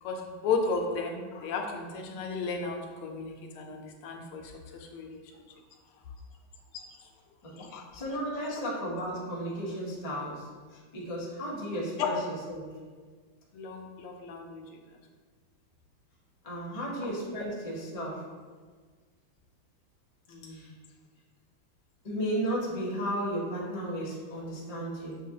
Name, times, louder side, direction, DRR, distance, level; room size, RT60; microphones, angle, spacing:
voice 1, 0.0-5.2 6.7-6.8 7.6-7.8 12.0-12.1 13.5-14.8 20.3-20.7, left 4 dB, 90° left, 2 dB, 1.5 m, -34 dB
voice 2, 7.9-12.7 16.4-18.3 20.5-20.7 22.0-25.2, equal, 60° left, -6 dB, 0.3 m, -34 dB
6.8 x 2.3 x 2.7 m, 1.5 s
omnidirectional pair, 2.3 m